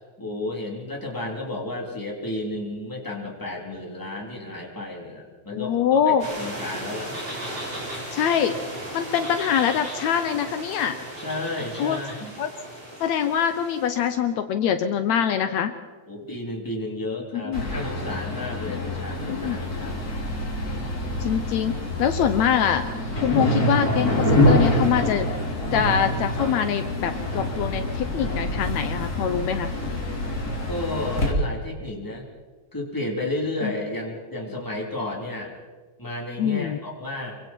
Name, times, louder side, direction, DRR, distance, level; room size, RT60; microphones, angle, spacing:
voice 1, 0.2-7.2 11.2-12.3 16.1-20.1 30.7-32.3 32.7-35.5 36.0-37.4, left 2 dB, 5° left, -2 dB, 3.5 m, -32 dB
voice 2, 5.5-6.3 8.1-8.6 8.9-11.0 11.8-12.0 12.4-12.5 13.0-15.7 17.4-17.7 19.3-19.6 21.2-22.9 23.2-25.3 25.7-29.7 33.6-33.7 36.4-36.8, left 8 dB, 75° left, 8 dB, 2.1 m, -24 dB
sound 1, 6.2-14.1, right 1 dB, 35° right, 7.3 m, -36 dB
sound 2, 17.5-31.3, left 1 dB, 30° left, 3.4 m, -26 dB
26.5 x 24.0 x 4.6 m, 1.4 s
omnidirectional pair, 3.4 m